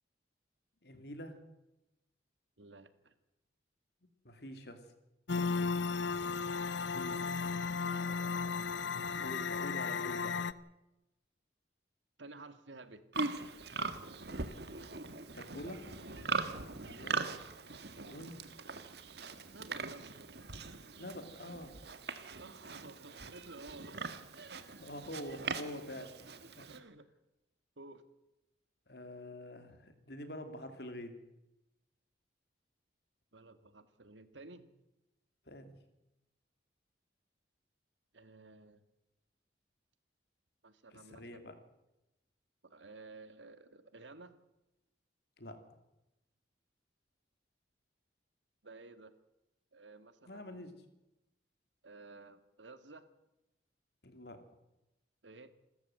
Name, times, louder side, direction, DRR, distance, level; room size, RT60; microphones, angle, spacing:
voice 1, 0.8-1.4 4.2-4.8 6.8-7.3 9.0-10.4 15.3-15.9 16.5-17.2 18.0-18.4 21.0-21.7 24.8-26.1 28.9-31.2 35.5-35.7 41.2-41.5 45.4-45.6 50.3-50.7 54.0-54.4, left 1 dB, 60° left, 8 dB, 3.0 m, -46 dB
voice 2, 2.6-3.1 5.5-5.8 7.8-8.1 12.2-13.0 19.5-20.3 22.4-24.7 26.7-27.1 27.8-28.0 33.3-34.7 38.1-38.8 40.6-41.5 42.6-44.3 48.6-49.1 49.7-50.8 51.8-53.1 55.2-55.5, right 3 dB, 80° right, 11 dB, 1.9 m, -53 dB
sound 1, 5.3-10.5, left 5 dB, 80° left, 0.8 m, -35 dB
Livestock farm animals working animals, 13.1-26.8, right 4 dB, 60° right, 1.7 m, -41 dB
28.0 x 14.0 x 7.9 m, 0.95 s
head